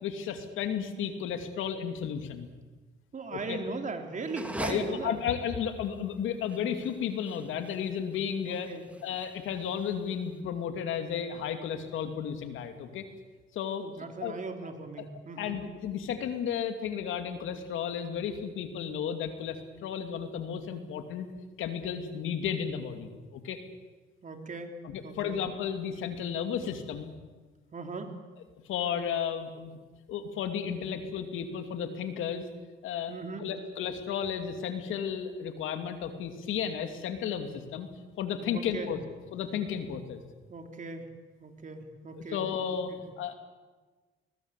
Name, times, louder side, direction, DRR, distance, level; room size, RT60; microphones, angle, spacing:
voice 1, 0.0-2.5 3.3-3.6 4.6-8.7 9.0-13.1 13.5-14.4 15.0-15.1 15.4-21.3 21.6-23.6 24.8-27.1 28.7-29.7 30.1-32.4 32.8-33.1 33.4-37.9 38.2-39.0 39.3-40.2 42.3-43.3, left 8 dB, 85° left, 7 dB, 2.6 m, -33 dB
voice 2, 3.1-5.2 8.5-8.9 13.8-15.6 24.2-24.7 25.0-25.4 27.7-28.2 33.1-33.5 38.5-38.9 40.5-41.1 41.4-42.4 42.9-43.0, right 3 dB, 40° right, 5 dB, 3.6 m, -38 dB
sound 1, 4.2-10.3, right 1 dB, 5° right, 2.5 m, -43 dB
21.0 x 20.5 x 8.3 m, 1.3 s
cardioid pair, 90°, 20 cm